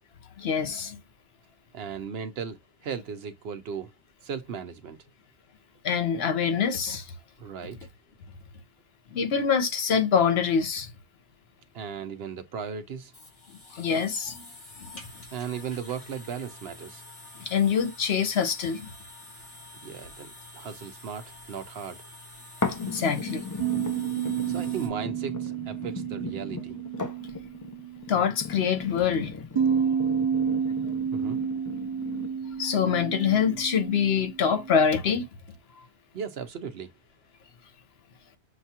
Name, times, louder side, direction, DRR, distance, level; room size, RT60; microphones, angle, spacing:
voice 1, 0.4-1.0 5.8-7.1 9.1-10.9 13.7-14.4 14.8-14.9 17.4-18.9 22.8-23.4 23.7-24.2 28.1-29.3 32.6-35.2, left 7 dB, 65° left, 1.0 m, -25 dB
voice 2, 1.7-3.9 4.2-5.0 7.4-7.8 11.7-13.1 15.3-17.0 19.8-22.0 24.5-26.8 31.1-31.4 36.1-36.9, right 7 dB, 60° right, 0.9 m, -36 dB
sound 1, 12.5-24.9, left 1 dB, 85° left, 2.3 m, -48 dB
sound 2, 22.6-32.6 33.2-33.3, left 4 dB, 30° left, 0.3 m, -37 dB
sound 3, 23.6-28.2 29.5-34.8, right 7 dB, 45° right, 0.3 m, -30 dB
6.5 x 2.3 x 2.8 m
omnidirectional pair, 1.2 m